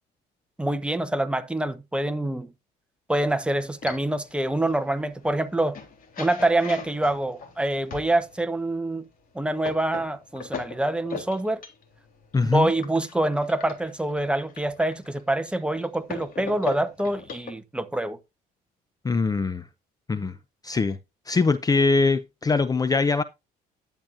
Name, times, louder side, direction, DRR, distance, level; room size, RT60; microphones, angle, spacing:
voice 1, 0.6-2.5 3.1-5.8 6.2-9.0 9.3-11.6 12.5-18.2, right 1 dB, 5° right, 1.1 m, -26 dB
sound 1, 3.1-8.4 9.1-17.5, left 5 dB, 55° left, 3.5 m, -41 dB
voice 2, 12.3-12.7 19.0-19.7 20.1-20.4 20.6-21.0 21.3-23.2, left 4 dB, 20° left, 0.6 m, -22 dB
11.5 x 8.9 x 2.6 m
cardioid pair, 110°, 17 cm